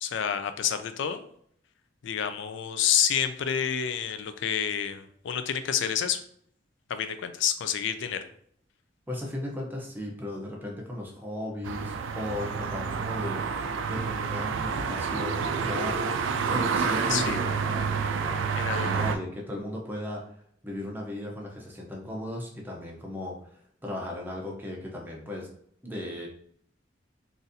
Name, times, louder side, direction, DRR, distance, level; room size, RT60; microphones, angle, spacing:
voice 1, 0.0-1.2 2.0-6.2 6.9-8.2 17.1-17.4 18.5-19.0, left 8 dB, 65° left, 10 dB, 0.4 m, -28 dB
voice 2, 9.1-18.4 18.8-20.2 20.6-25.5 25.8-26.3, left 1 dB, 10° right, -1 dB, 0.6 m, -36 dB
sound 1, 11.6-19.2, right 5 dB, 65° right, 0.3 m, -29 dB
4.0 x 2.5 x 2.6 m, 0.63 s
head